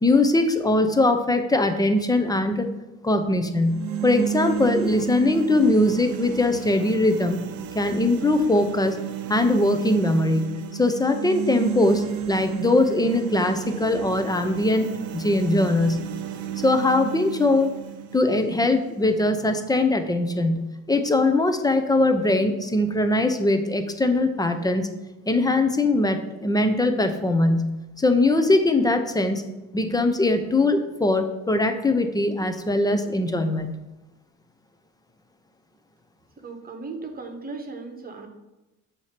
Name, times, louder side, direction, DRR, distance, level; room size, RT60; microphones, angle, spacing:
voice 1, 0.0-2.7 3.0-7.4 7.7-9.0 9.3-10.4 10.7-16.0 16.6-17.7 18.1-24.9 25.3-27.7 28.0-29.4 29.7-33.7, left 2 dB, 10° left, 7 dB, 0.6 m, -21 dB
sound 1, 3.5-19.5, right 10 dB, 85° right, 0.7 m, -33 dB
voice 2, 36.4-38.3, right 3 dB, 25° right, 5 dB, 1.1 m, -37 dB
6.9 x 2.9 x 5.1 m, 1.0 s
cardioid pair, 95°, 35 cm